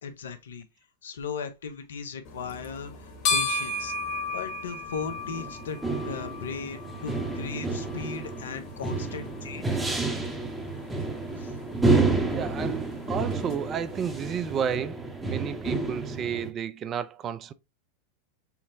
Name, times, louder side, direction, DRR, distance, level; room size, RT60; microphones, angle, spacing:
voice 1, 0.0-0.7 1.0-3.9 4.3-5.8 6.1-9.8 11.4-11.5, left 6 dB, 75° left, 0.6 m, -37 dB
sound 1, 2.2-14.8, left 3 dB, 50° left, 1.1 m, -36 dB
sound 2, 5.0-16.5, right 3 dB, 10° right, 0.8 m, -30 dB
voice 2, 12.3-17.5, right 8 dB, 35° right, 0.4 m, -32 dB
5.7 x 2.0 x 2.6 m
hypercardioid pair, 95°, 0 cm